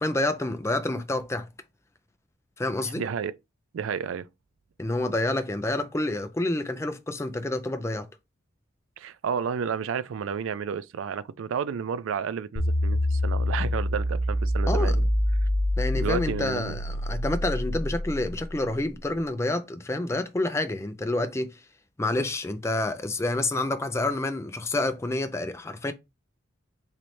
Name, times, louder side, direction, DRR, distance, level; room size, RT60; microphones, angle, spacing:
voice 1, 0.0-1.5 2.6-3.0 4.8-8.1 14.7-15.0 15.8-21.6 22.0-25.9, left 2 dB, 15° left, 0.4 m, -28 dB
voice 2, 2.9-3.3 3.7-4.3 9.0-15.1 15.9-16.8, right 6 dB, 75° right, 0.3 m, -31 dB
sound 1, 12.6-18.8, left 1 dB, 75° left, 0.7 m, -26 dB
3.9 x 3.1 x 3.1 m
head